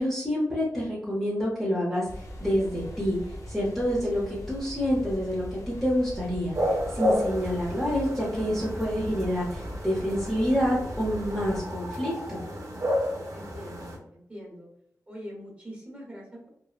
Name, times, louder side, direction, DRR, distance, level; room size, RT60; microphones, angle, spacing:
voice 1, 0.0-3.2 3.5-12.4, equal, ahead, -7 dB, 0.8 m, -28 dB
sound 1, 2.1-11.6, equal, 70° left, 0.5 m, -40 dB
sound 2, 6.5-14.0, equal, 65° right, 0.7 m, -31 dB
voice 2, 13.3-14.7 15.1-16.5, equal, 25° right, -3 dB, 1.2 m, -43 dB
3.0 x 2.1 x 2.3 m, 0.72 s
wide cardioid pair, 85°, 6 cm